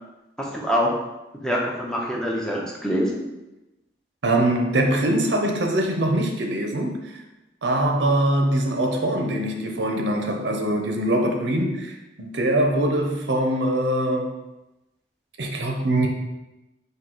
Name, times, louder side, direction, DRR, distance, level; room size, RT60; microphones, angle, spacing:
voice 1, 0.4-0.9 1.4-3.3, equal, 5° left, -3 dB, 0.6 m, -25 dB
voice 2, 4.2-6.9 7.6-14.3 15.4-16.1, right 1 dB, 80° right, 2 dB, 0.7 m, -23 dB
4.5 x 2.7 x 3.9 m, 0.98 s
head